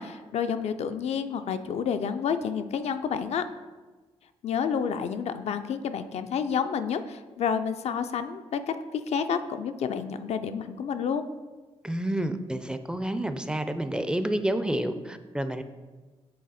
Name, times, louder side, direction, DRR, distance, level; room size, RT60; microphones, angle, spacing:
voice 1, 0.0-3.4 4.4-11.2, left 7 dB, 70° left, 9 dB, 0.4 m, -29 dB
voice 2, 11.8-15.6, right 1 dB, 5° right, 9 dB, 0.4 m, -29 dB
7.6 x 3.3 x 4.1 m, 1.3 s
cardioid pair, 75°, 11 cm